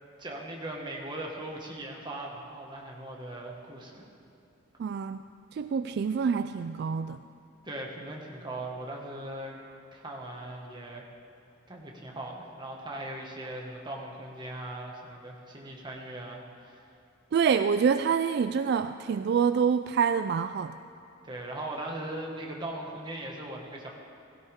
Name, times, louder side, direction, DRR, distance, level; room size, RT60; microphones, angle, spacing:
voice 1, 0.2-4.1 7.6-9.6 9.9-11.0 11.7-16.8 21.3-23.9, right 1 dB, 25° right, -1 dB, 1.7 m, -39 dB
voice 2, 4.8-5.2 5.5-7.2 17.3-20.7, right 6 dB, 55° right, 11 dB, 0.3 m, -26 dB
16.5 x 16.0 x 3.6 m, 2.8 s
head